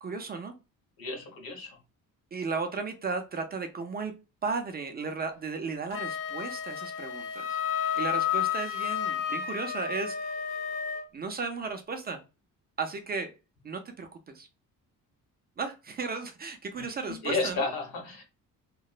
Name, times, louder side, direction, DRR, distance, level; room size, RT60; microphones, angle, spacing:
voice 1, 0.0-0.6 2.3-4.1 4.4-10.4 11.1-12.2 12.8-13.3 13.6-14.5 15.6-17.7, right 4 dB, 30° right, 0.4 m, -35 dB
voice 2, 1.0-1.8 17.1-18.2, left 3 dB, 85° left, 1.1 m, -32 dB
Wind instrument woodwind instrument, 5.9-11.1, left 9 dB, 65° left, 0.6 m, -31 dB
2.9 x 2.0 x 2.3 m
cardioid pair, 160°, 35 cm